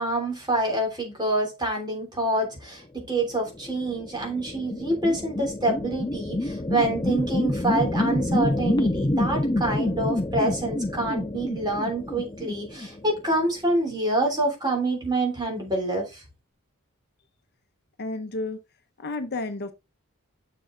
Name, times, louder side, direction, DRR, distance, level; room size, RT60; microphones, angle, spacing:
voice 1, 0.0-16.2, right 2 dB, 20° right, 3.3 m, -27 dB
sound 1, 3.6-13.3, left 1 dB, 20° left, 0.7 m, -27 dB
voice 2, 18.0-18.6 19.0-19.7, left 2 dB, 50° left, 0.9 m, -31 dB
6.9 x 6.1 x 3.9 m
head